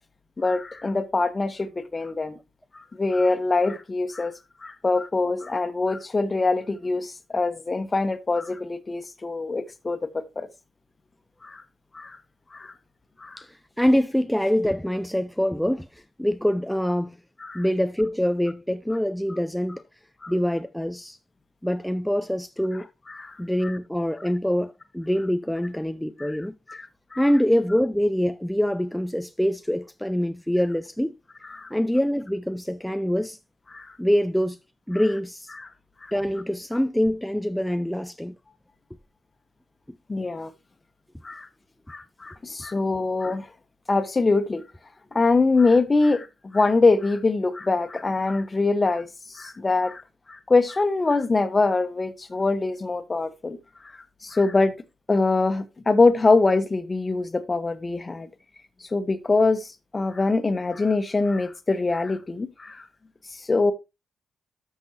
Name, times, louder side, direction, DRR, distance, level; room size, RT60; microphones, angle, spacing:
voice 1, 0.4-2.4 2.7-4.3 4.6-10.5 11.4-11.6 11.9-12.2 12.5-12.7 13.2-13.4 17.4-17.6 20.2-20.3 23.1-23.4 23.6-23.7 26.2-26.4 26.7-27.2 31.5-31.7 33.7-34.0 35.6-35.7 36.0-36.1 40.1-40.5 41.2-41.5 41.9-43.5 43.9-44.6 45.1-50.0 50.3-53.6 53.8-53.9 54.2-54.7 55.1-58.3 58.8-62.9 63.3-63.7, left 3 dB, 30° left, 1.3 m, -24 dB
voice 2, 13.4-17.2 17.5-19.8 20.3-21.2 21.6-22.9 23.4-26.6 27.2-31.1 31.7-33.4 34.0-34.6 34.9-35.5 36.1-38.4, equal, 5° left, 0.5 m, -25 dB
12.5 x 6.3 x 2.8 m
supercardioid pair, 60°, 0 cm